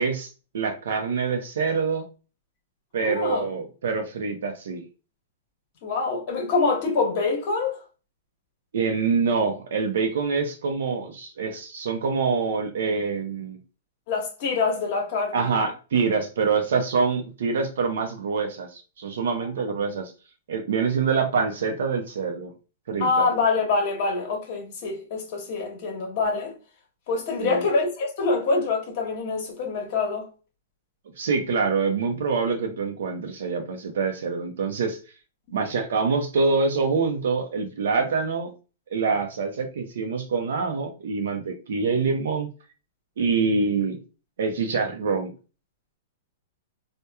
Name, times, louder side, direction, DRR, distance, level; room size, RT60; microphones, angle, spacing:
voice 1, 0.0-2.0 2.9-4.8 8.7-13.6 15.3-20.1 20.5-22.5 22.9-23.3 27.4-27.6 31.2-35.0 35.5-38.5 38.9-42.5 43.2-44.0 44.4-45.3, right 5 dB, 80° right, 0.5 m, -25 dB
voice 2, 3.0-3.5 5.8-7.8 14.1-15.7 19.4-19.5 23.0-26.5 27.1-30.3, left 4 dB, 45° left, 0.9 m, -25 dB
2.9 x 2.1 x 2.2 m
hypercardioid pair, 150°, 0 cm